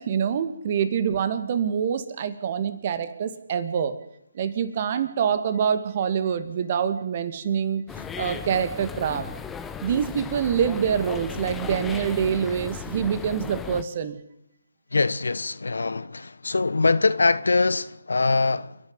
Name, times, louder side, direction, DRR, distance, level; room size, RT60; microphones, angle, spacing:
voice 1, 0.0-4.0 4.3-7.9 8.2-9.3 9.8-14.2, right 7 dB, 40° right, 2.3 m, -25 dB
sound 1, 7.9-13.8, left 6 dB, 10° left, 1.0 m, -36 dB
voice 2, 14.9-18.7, left 3 dB, 75° left, 1.1 m, -23 dB
28.5 x 11.0 x 9.8 m
figure-of-eight pair, 150°, 0 cm